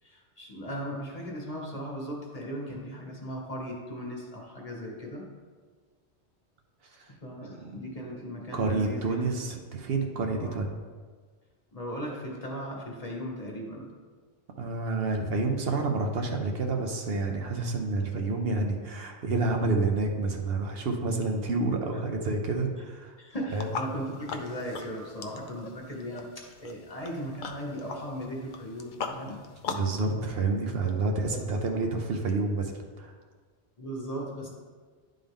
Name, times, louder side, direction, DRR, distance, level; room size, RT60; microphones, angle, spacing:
voice 1, 0.0-5.3 7.1-9.2 10.3-10.6 11.7-13.9 23.2-29.4 31.3-31.4 33.8-34.5, equal, 35° left, -2 dB, 1.2 m, -37 dB
voice 2, 8.5-10.7 14.6-23.1 23.5-23.7 29.7-33.1, right 3 dB, 65° right, 3 dB, 0.9 m, -29 dB
sound 1, 23.5-30.0, left 5 dB, 60° left, 0.6 m, -40 dB
9.9 x 3.8 x 3.5 m, 1.5 s
omnidirectional pair, 1.1 m